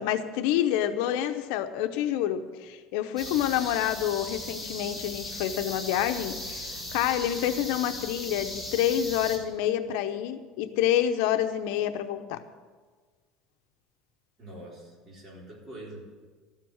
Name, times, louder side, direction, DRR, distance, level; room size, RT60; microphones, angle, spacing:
voice 1, 0.0-12.4, left 11 dB, 75° left, 9 dB, 0.8 m, -28 dB
sound 1, 3.2-9.4, left 1 dB, 5° right, 2.2 m, -38 dB
voice 2, 14.4-16.0, right 1 dB, 25° right, -3 dB, 4.0 m, -44 dB
13.0 x 7.5 x 7.9 m, 1.4 s
cardioid pair, 155°, 0 cm